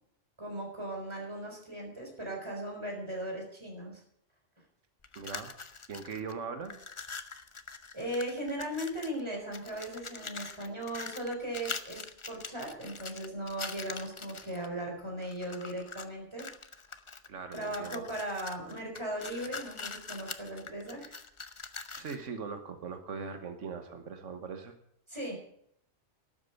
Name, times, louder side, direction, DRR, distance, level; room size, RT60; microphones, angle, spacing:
voice 1, 0.4-4.0 7.9-16.5 17.5-21.2 25.1-25.3, right 1 dB, 25° right, 0 dB, 4.3 m, -38 dB
sound 1, 5.0-6.3 6.6-9.2 9.5-14.7 15.2-16.1 16.4-22.3, left 4 dB, 30° left, 0.7 m, -43 dB
voice 2, 5.1-5.6 5.9-6.8 17.3-18.1 21.9-24.7, right 5 dB, 90° right, 8 dB, 1.5 m, -40 dB
12.0 x 8.1 x 9.2 m, 0.71 s
omnidirectional pair, 1.2 m